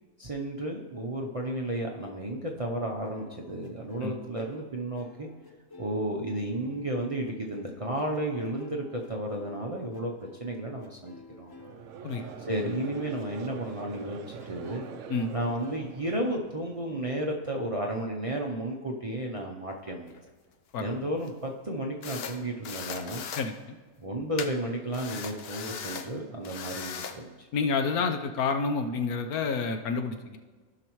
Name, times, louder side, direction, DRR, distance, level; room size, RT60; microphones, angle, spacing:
voice 1, 0.2-5.3 5.8-10.1 10.4-11.5 12.5-14.8 15.3-20.1 20.8-23.2 24.0-27.5, right 1 dB, 35° right, -1 dB, 0.5 m, -33 dB
sound 1, 3.1-11.8 12.1-14.9 15.6-15.8, left 2 dB, 20° left, 0.7 m, -51 dB
Conversation / Crowd, 11.6-16.9, right 7 dB, 65° right, 0.9 m, -43 dB
electric screwdriver ST, 19.9-20.2 21.3-21.4 22.0-22.4 22.6-23.5 24.4-24.5 24.9-26.1 26.4-27.2, left 6 dB, 55° left, 0.7 m, -38 dB
voice 2, 23.4-23.8 27.5-30.4, left 4 dB, 85° left, 7 dB, 1.3 m, -29 dB
15.5 x 5.8 x 3.1 m, 1.4 s
omnidirectional pair, 1.5 m